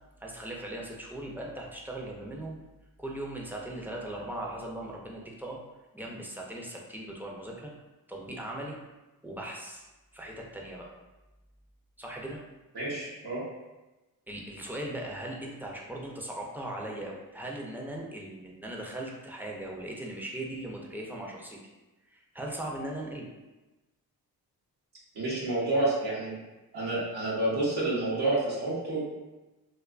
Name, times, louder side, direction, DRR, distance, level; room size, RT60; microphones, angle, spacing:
voice 1, 0.2-2.6 3.0-5.6 5.9-7.7 8.1-8.8 9.2-9.8 10.1-10.9 12.0-12.4 14.3-21.6 22.0-23.3, right 1 dB, 5° right, -2 dB, 0.4 m, -39 dB
voice 2, 12.7-13.4 25.1-26.4 26.7-29.0, right 2 dB, 85° right, -7 dB, 0.8 m, -29 dB
2.4 x 2.2 x 2.3 m, 1.1 s
cardioid pair, 70°, 38 cm